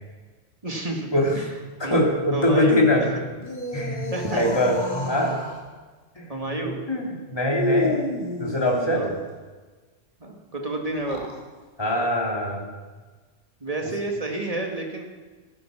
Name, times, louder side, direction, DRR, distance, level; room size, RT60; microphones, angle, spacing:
voice 1, 0.6-1.1 1.3-1.5 1.8-2.8 4.1-4.4 6.3-6.8 8.9-9.1 10.2-11.2 13.6-15.1, right 2 dB, 30° right, 1 dB, 2.0 m, -30 dB
voice 2, 1.8-3.1 3.7-5.4 6.2-6.6 6.9-8.0 8.4-9.0 11.8-12.7, left 1 dB, 20° left, -1 dB, 2.6 m, -23 dB
sound 1, 3.3-5.6 7.5-9.3 10.9-11.4, left 2 dB, 40° left, 2.0 m, -30 dB
15.5 x 10.5 x 6.1 m, 1.3 s
omnidirectional pair, 1.3 m